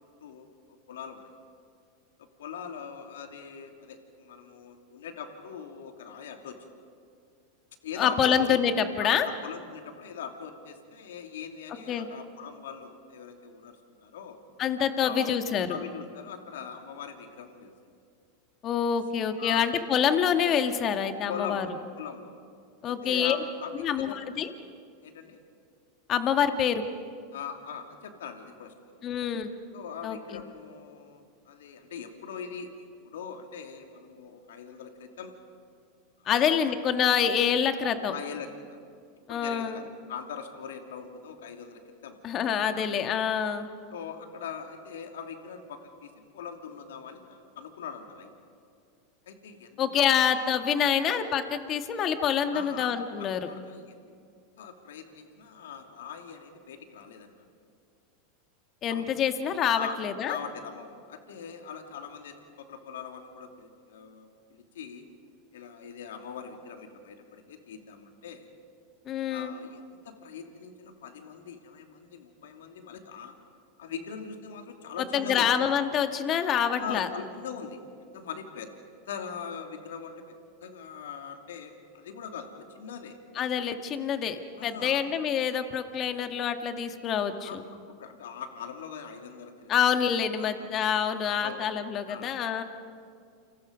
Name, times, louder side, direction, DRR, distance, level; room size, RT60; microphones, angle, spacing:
voice 1, 0.9-1.3 2.2-6.6 7.8-8.6 9.0-13.8 14.0-14.4 15.0-15.3 15.7-17.7 19.4-19.6 21.3-22.3 22.8-24.2 25.0-25.4 27.3-28.9 29.7-35.3 36.3-36.8 38.1-38.6 39.3-42.2 42.7-42.9 43.9-48.3 49.2-50.0 52.5-54.2 54.6-57.3 58.9-59.1 59.7-65.0 65.5-68.5 69.3-73.3 73.8-75.5 76.8-77.8 78.1-78.7 79.1-80.3 80.6-83.2 84.6-85.0 87.4-87.6 88.0-89.7 90.4-90.7 91.4-91.8 92.1-92.4, left 7 dB, 80° left, 5 dB, 2.7 m, -41 dB
voice 2, 8.0-9.3 11.9-12.1 14.6-15.8 18.6-21.7 22.8-23.4 23.8-24.5 26.1-26.8 29.0-29.5 30.0-30.4 36.3-38.1 39.3-39.8 42.2-43.7 49.8-53.5 58.8-60.4 69.1-69.5 75.1-77.1 83.4-87.6 89.7-92.6, left 8 dB, 40° left, 7 dB, 2.0 m, -26 dB
29.0 x 27.5 x 5.3 m, 2.2 s
hypercardioid pair, 100°, 0 cm